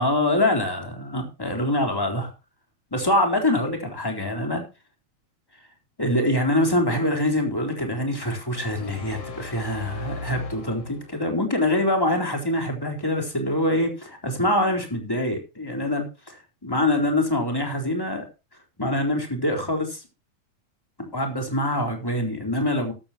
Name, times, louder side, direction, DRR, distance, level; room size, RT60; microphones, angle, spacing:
voice 1, 0.0-2.3 2.9-4.6 6.0-18.3 18.8-20.0 21.0-22.9, left 1 dB, 5° left, 3 dB, 3.7 m, -24 dB
sound 1, 8.5-11.3, left 2 dB, 80° left, 5.0 m, -37 dB
14.0 x 13.0 x 2.9 m, 0.28 s
omnidirectional pair, 3.4 m